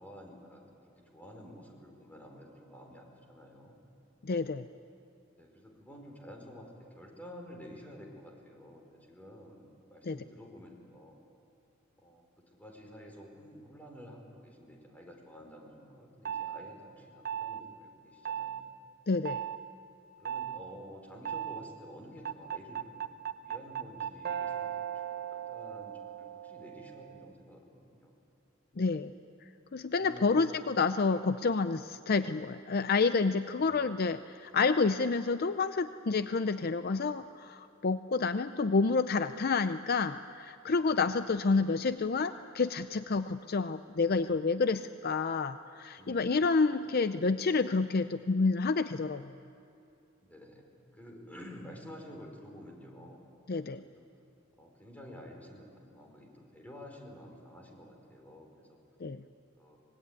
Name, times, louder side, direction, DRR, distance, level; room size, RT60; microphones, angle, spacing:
voice 1, 0.0-3.8 5.4-9.6 9.9-11.2 12.0-18.7 20.2-28.1 30.0-30.3 33.6-33.9 45.9-46.3 46.7-46.9 50.2-50.7 50.9-53.2 53.9-54.1 54.6-58.8 59.6-59.8, equal, 10° left, 1 dB, 4.6 m, -50 dB
voice 2, 4.2-4.7 10.0-10.2 19.1-19.4 28.8-29.1 29.7-49.4 53.5-53.8 59.0-59.2, left 4 dB, 50° left, 11 dB, 0.5 m, -29 dB
sound 1, 16.3-16.6 17.3-17.6 18.3-18.6 19.3-19.6 20.3-20.6 21.3-21.6 22.3-27.3, right 9 dB, 50° right, 0.9 m, -37 dB
25.5 x 20.5 x 9.5 m, 2.7 s
head